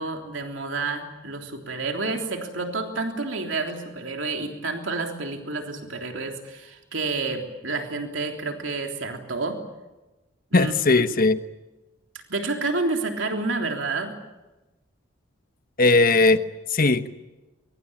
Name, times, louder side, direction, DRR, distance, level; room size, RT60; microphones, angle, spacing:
voice 1, 0.0-9.6 10.5-11.0 12.3-14.1, right 3 dB, 75° right, 3 dB, 3.4 m, -29 dB
voice 2, 10.5-11.4 15.8-16.4 16.7-17.1, left 3 dB, 50° left, 11 dB, 1.2 m, -18 dB
23.5 x 23.0 x 8.8 m, 1.1 s
head